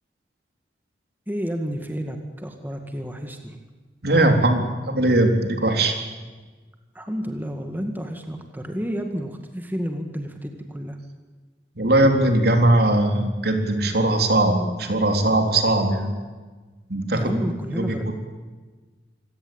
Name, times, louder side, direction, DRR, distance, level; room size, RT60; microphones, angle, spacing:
voice 1, 1.3-3.6 6.9-11.0 17.1-18.1, equal, 10° right, 4 dB, 2.0 m, -30 dB
voice 2, 4.0-6.0 11.8-16.1 16.9-17.4 17.8-18.1, right 1 dB, 65° right, 4 dB, 3.8 m, -20 dB
27.0 x 17.0 x 8.9 m, 1.3 s
head